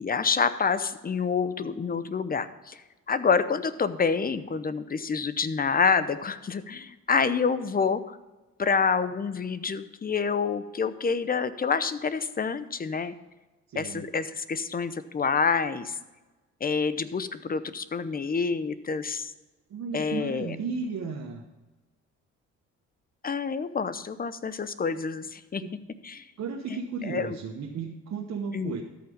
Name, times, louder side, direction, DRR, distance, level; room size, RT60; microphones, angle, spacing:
voice 1, 0.0-2.8 3.1-8.2 8.6-13.1 13.7-16.0 16.6-19.3 19.9-20.6 23.2-25.6 26.0-26.2 26.7-27.4 28.5-28.7, left 5 dB, 30° left, 13 dB, 0.7 m, -27 dB
voice 2, 13.7-14.0 19.7-21.4 25.6-25.7 26.4-28.8, right 5 dB, 60° right, 1 dB, 1.2 m, -34 dB
13.0 x 5.8 x 5.3 m, 1.2 s
cardioid pair, 90°, 30 cm